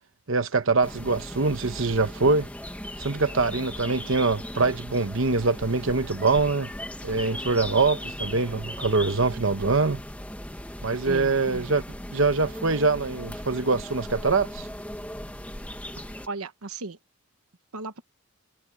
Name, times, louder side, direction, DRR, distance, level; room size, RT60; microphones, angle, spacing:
voice 1, 0.3-2.5 3.0-6.7 7.0-10.0 10.8-11.8 12.1-14.7, right 3 dB, 60° right, 1.0 m, -24 dB
sound 1, 0.8-16.3, left 1 dB, 5° left, 1.6 m, -38 dB
voice 2, 11.0-11.7 16.3-17.0 17.7-18.0, right 3 dB, 85° right, 1.2 m, -36 dB
head